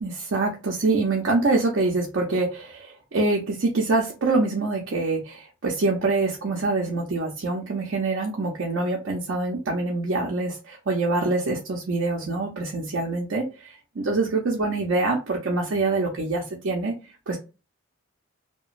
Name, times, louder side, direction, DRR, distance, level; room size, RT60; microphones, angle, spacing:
voice 1, 0.0-16.9 17.3-17.4, right 3 dB, 65° right, -1 dB, 0.6 m, -25 dB
2.9 x 2.2 x 2.4 m, 0.30 s
head